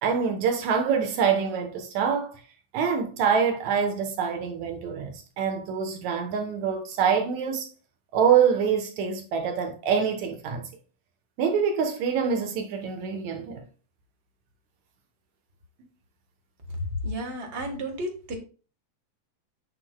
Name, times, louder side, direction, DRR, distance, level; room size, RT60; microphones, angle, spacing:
voice 1, 0.0-2.3 2.7-7.7 8.1-10.7 11.4-13.6, right 7 dB, 75° right, 2.4 m, -25 dB
voice 2, 17.0-18.3, right 1 dB, 35° right, 1.0 m, -32 dB
8.2 x 5.6 x 2.2 m
omnidirectional pair, 3.4 m